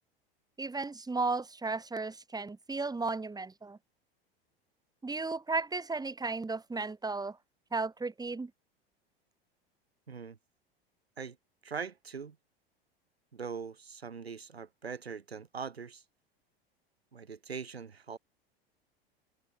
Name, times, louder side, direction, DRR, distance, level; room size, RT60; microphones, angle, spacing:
voice 1, 0.6-3.8 5.0-7.4 7.7-8.5, right 3 dB, 10° right, 7.4 m, -34 dB
voice 2, 10.1-10.4 11.2-11.4 11.6-12.4 13.3-16.0 17.1-18.2, right 6 dB, 85° right, 4.2 m, -41 dB
open air
figure-of-eight pair, 85°, 31 cm